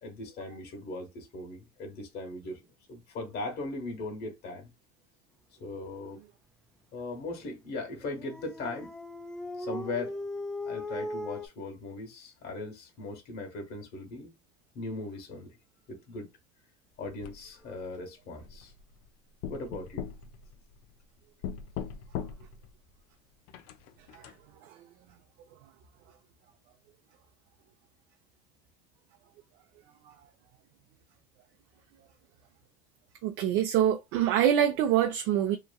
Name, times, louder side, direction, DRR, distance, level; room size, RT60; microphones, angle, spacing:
voice 1, 0.0-2.6 2.9-4.7 5.6-6.2 6.9-8.9 9.6-10.2 10.6-14.3 14.7-15.6 15.9-16.3 17.0-18.7 19.5-20.1, left 2 dB, 55° left, 1.3 m, -39 dB
Dog, 8.0-11.5, left 1 dB, 5° left, 0.4 m, -38 dB
sound 1, 17.2-17.9 18.4-19.1 19.4-21.0 21.4-22.7 23.5-24.3, left 8 dB, 75° left, 0.5 m, -40 dB
voice 2, 33.2-35.6, right 10 dB, 70° right, 0.5 m, -25 dB
3.0 x 2.4 x 2.3 m
supercardioid pair, 100°, 19 cm